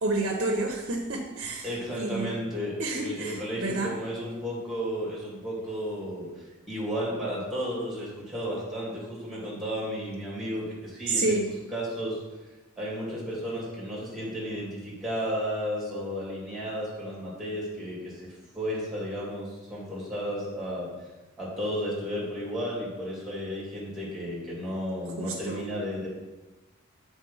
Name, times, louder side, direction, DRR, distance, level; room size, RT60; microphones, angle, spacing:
voice 1, 0.0-2.3 2.8-3.9 11.1-11.5 25.2-25.7, right 2 dB, 55° right, 2 dB, 0.7 m, -29 dB
voice 2, 1.6-6.3 6.7-11.3 11.7-12.2 12.8-20.9 21.4-26.1, equal, ahead, -6 dB, 2.4 m, -33 dB
7.4 x 3.7 x 5.4 m, 1.2 s
head